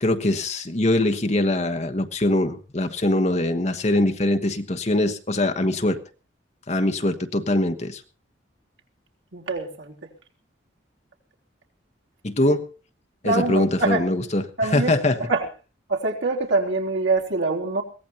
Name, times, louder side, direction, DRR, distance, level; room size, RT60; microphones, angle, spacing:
voice 1, 0.0-6.0 6.7-8.0 12.2-12.7 13.2-14.4 14.7-15.2, left 1 dB, 35° left, 8 dB, 1.2 m, -22 dB
voice 2, 9.3-9.9 13.2-14.0 14.6-14.9 15.2-15.5 15.9-17.8, right 3 dB, 80° right, 0 dB, 3.6 m, -24 dB
22.5 x 17.0 x 2.9 m, 0.35 s
head